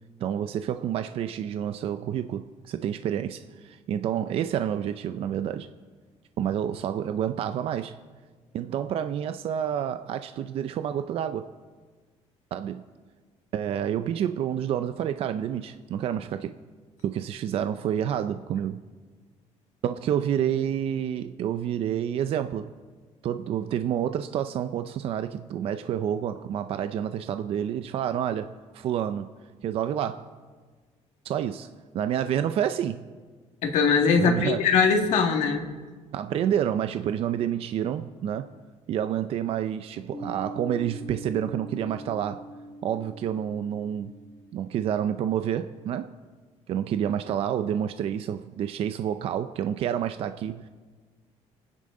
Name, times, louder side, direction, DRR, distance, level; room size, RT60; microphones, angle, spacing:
voice 1, 0.2-5.7 6.4-8.0 8.5-11.5 12.5-12.8 13.5-16.5 17.0-18.8 19.8-22.7 23.2-29.3 29.6-30.3 31.2-31.7 31.9-33.0 34.2-34.7 36.1-38.5 38.9-42.4 42.8-44.1 44.5-46.1 46.7-50.7, right 9 dB, 55° right, 9 dB, 0.5 m, -29 dB
voice 2, 33.6-35.7, left 5 dB, 75° left, 3 dB, 2.0 m, -21 dB
sound 1, 40.1-45.6, right 1 dB, 20° left, 2.6 m, -43 dB
29.5 x 10.0 x 3.8 m, 1.4 s
cardioid pair, 165°, 12 cm